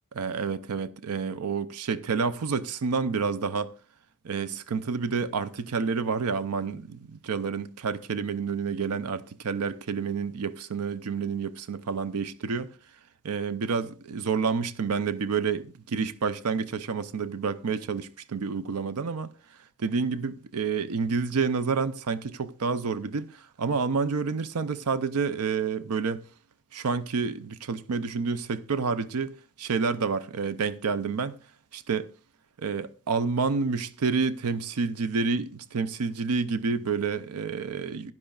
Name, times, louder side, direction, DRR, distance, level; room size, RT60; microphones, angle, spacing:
voice 1, 0.1-3.7 4.2-12.7 13.2-19.3 19.8-26.2 26.7-31.4 31.7-32.1 32.6-38.1, right 5 dB, 85° right, 0.5 m, -29 dB
15.5 x 11.0 x 2.4 m
head